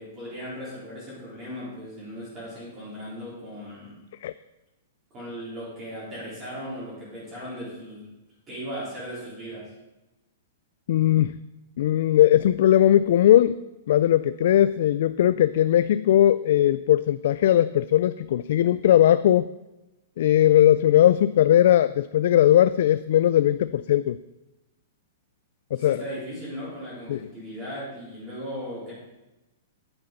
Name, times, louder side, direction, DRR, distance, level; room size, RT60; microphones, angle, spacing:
voice 1, 0.0-3.9 5.1-8.0 8.5-9.7 25.7-28.9, equal, 20° right, -8 dB, 4.0 m, -37 dB
voice 2, 10.9-11.4 11.8-13.6 13.9-19.5 20.2-24.2 25.7-26.0 27.1-27.2, left 12 dB, 55° left, 14 dB, 0.3 m, -19 dB
9.6 x 8.8 x 5.3 m, 1.0 s
hypercardioid pair, 165°, 0 cm